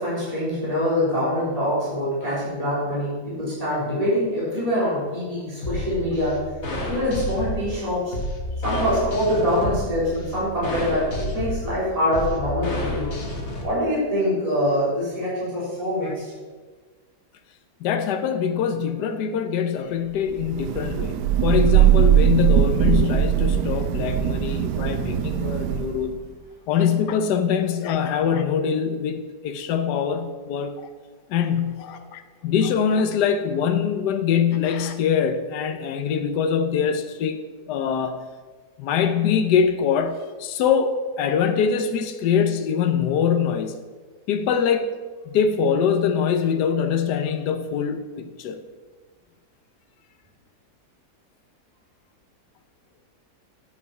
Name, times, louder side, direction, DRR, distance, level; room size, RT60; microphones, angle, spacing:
voice 1, 0.0-6.4 6.9-8.2 8.6-13.1 13.6-16.3, equal, 20° right, -8 dB, 3.8 m, -24 dB
sound 1, 5.6-13.6, left 1 dB, 45° left, 1.9 m, -30 dB
voice 2, 17.8-26.1 26.7-30.9 31.3-37.4 37.7-38.2 38.8-43.8 44.3-44.9 45.3-48.6, left 7 dB, 80° left, 8 dB, 1.3 m, -23 dB
Thunder / Rain, 20.4-26.1, right 11 dB, 85° right, 1.2 m, -20 dB
9.5 x 8.1 x 4.8 m, 1.4 s
omnidirectional pair, 1.8 m